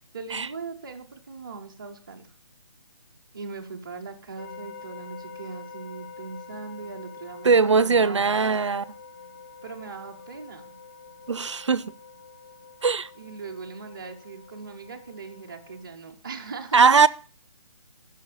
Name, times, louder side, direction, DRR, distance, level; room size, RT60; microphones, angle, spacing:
voice 1, 0.1-2.3 3.3-8.8 9.6-10.7 13.2-17.0, right 4 dB, 5° right, 0.5 m, -40 dB
sound 1, 4.4-15.8, left 5 dB, 35° left, 1.4 m, -46 dB
voice 2, 7.4-8.8 11.3-11.9 12.8-13.1 16.7-17.1, right 5 dB, 55° right, 0.6 m, -20 dB
12.0 x 6.3 x 8.7 m
hypercardioid pair, 180°, 18 cm